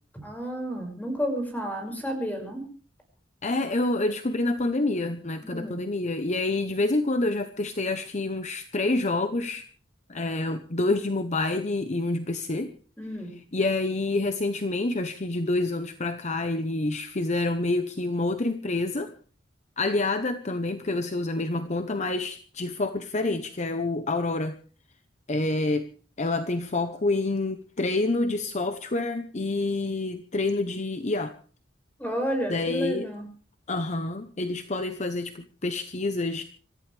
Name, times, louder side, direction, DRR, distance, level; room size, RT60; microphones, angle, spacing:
voice 1, 0.2-2.7 5.4-5.8 13.0-13.3 32.0-33.2, equal, 10° left, 3 dB, 5.8 m, -31 dB
voice 2, 3.4-9.6 10.1-12.7 13.5-19.1 19.8-24.6 25.3-25.9 26.2-31.3 32.5-33.1 33.7-36.4, left 2 dB, 40° left, 8 dB, 0.9 m, -27 dB
26.5 x 14.0 x 3.4 m, 0.39 s
head